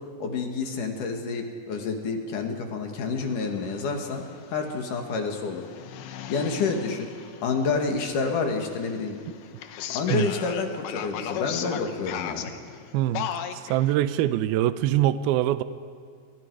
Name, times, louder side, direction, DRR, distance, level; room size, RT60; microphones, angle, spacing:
voice 1, 0.2-4.2 4.5-5.6 6.3-7.1 7.4-9.2 9.9-12.5, left 4 dB, 55° left, 3 dB, 3.1 m, -28 dB
sound 1, 3.2-13.9, left 9 dB, 70° left, 2.7 m, -38 dB
voice 2, 12.9-15.6, right 13 dB, 85° right, 12 dB, 2.2 m, -24 dB
30.0 x 24.5 x 4.8 m, 2.1 s
omnidirectional pair, 5.2 m